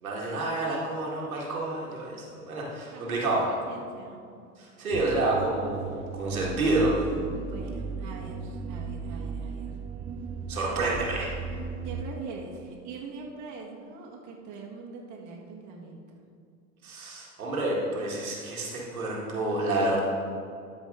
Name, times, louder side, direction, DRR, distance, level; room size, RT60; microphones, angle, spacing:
voice 1, 0.0-3.4 4.6-5.8 6.1-7.0 10.5-11.3 16.8-20.0, right 2 dB, 90° right, -4 dB, 1.9 m, -28 dB
voice 2, 2.9-4.2 7.3-9.8 11.8-16.2, right 4 dB, 45° right, -2 dB, 1.7 m, -42 dB
sound 1, 4.9-12.0, right 5 dB, 20° right, 0.3 m, -36 dB
13.0 x 5.2 x 3.7 m, 2.3 s
hypercardioid pair, 90°, 41 cm